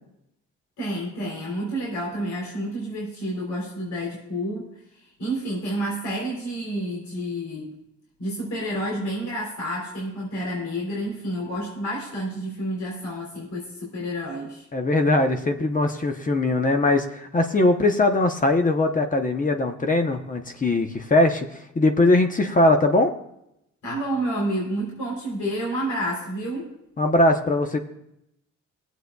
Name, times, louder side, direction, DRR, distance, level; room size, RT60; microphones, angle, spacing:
voice 1, 0.8-7.7 8.2-14.7 23.8-26.7, right 1 dB, 70° left, -3 dB, 3.5 m, -29 dB
voice 2, 14.7-21.5 21.7-23.1 27.0-27.8, left 2 dB, 25° left, 6 dB, 0.8 m, -20 dB
22.5 x 8.1 x 2.3 m, 0.81 s
cardioid pair, 90°, 30 cm